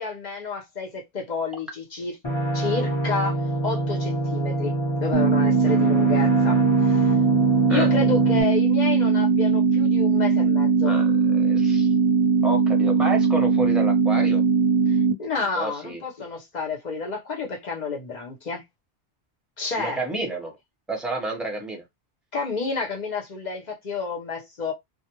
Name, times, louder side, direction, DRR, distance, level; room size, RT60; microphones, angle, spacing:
voice 1, 0.0-2.2 2.5-7.1 7.7-10.9 14.9-18.6 19.6-20.0 22.3-24.7, left 4 dB, 45° left, 0.7 m, -30 dB
sound 1, 2.2-8.4, right 1 dB, 25° left, 1.1 m, -26 dB
sound 2, 5.1-15.1, right 5 dB, 55° right, 0.7 m, -20 dB
voice 2, 10.8-11.9 12.4-14.4 15.4-16.0 19.8-20.5 20.9-21.8, right 2 dB, ahead, 0.7 m, -30 dB
2.4 x 2.1 x 2.8 m
omnidirectional pair, 1.1 m